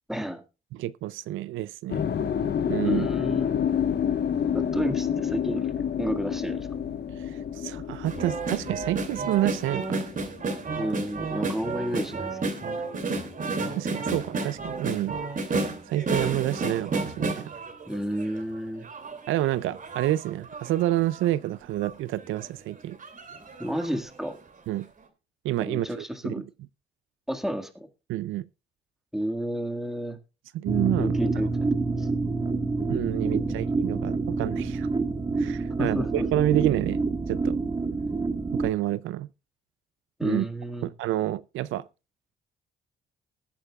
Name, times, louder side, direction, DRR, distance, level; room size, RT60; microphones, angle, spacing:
voice 1, 0.1-0.4 2.8-3.6 4.5-5.7 6.0-6.7 10.8-12.6 17.9-18.9 23.6-24.4 25.6-26.4 27.3-27.9 29.1-30.2 31.0-31.5 32.0-32.1 33.2-33.6 35.8-36.3 40.2-40.9, equal, ahead, 1.8 m, -31 dB
voice 2, 0.7-2.0 2.7-3.1 7.2-10.1 13.8-15.2 15.9-17.5 19.3-23.0 24.7-24.9 25.4-26.3 28.1-28.4 30.5-31.2 32.9-34.9 35.4-37.0 37.3-37.6 38.5-39.3 40.2-40.4 40.8-41.8, right 14 dB, 85° right, 0.5 m, -28 dB
sound 1, 1.9-12.0 12.3-13.9, left 8 dB, 55° left, 1.3 m, -29 dB
sound 2, 8.1-18.4 18.8-21.3 21.8-21.9 22.2-22.5 23.0-23.9 24.3-24.4, right 3 dB, 40° right, 2.7 m, -32 dB
sound 3, 30.7-38.7, right 3 dB, 25° right, 1.5 m, -27 dB
20.0 x 8.7 x 2.4 m
cardioid pair, 90°, 20 cm